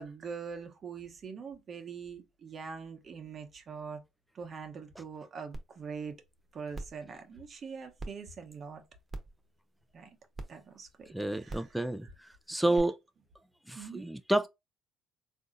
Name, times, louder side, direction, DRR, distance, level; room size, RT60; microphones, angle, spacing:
voice 1, 0.0-4.0 4.3-6.1 6.5-8.8 9.9-10.1 10.5-11.7 12.6-12.8 13.7-14.1, right 5 dB, 45° right, 0.8 m, -43 dB
sound 1, 5.5-5.6 6.1-6.2 6.7-7.0 8.0-8.1 9.1-9.4 10.3-10.5 11.5-11.7 12.8-12.9, right 2 dB, 20° right, 0.9 m, -40 dB
voice 2, 11.1-13.0 13.7-14.5, right 1 dB, 5° right, 0.3 m, -30 dB
3.6 x 2.6 x 2.5 m
hypercardioid pair, 65°, 0 cm